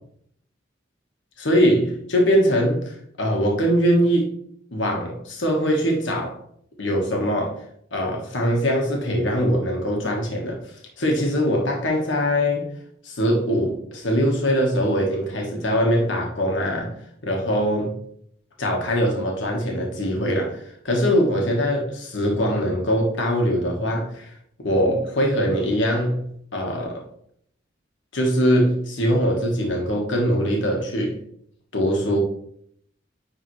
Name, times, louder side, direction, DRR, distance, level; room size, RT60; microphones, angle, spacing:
voice 1, 1.4-4.3 4.7-6.4 6.8-7.6 7.9-10.6 11.0-12.7 13.0-16.9 17.2-18.0 18.6-24.3 24.6-27.0 28.1-31.2 31.7-32.2, equal, 80° left, 0 dB, 1.5 m, -22 dB
9.9 x 3.6 x 3.2 m, 0.66 s
head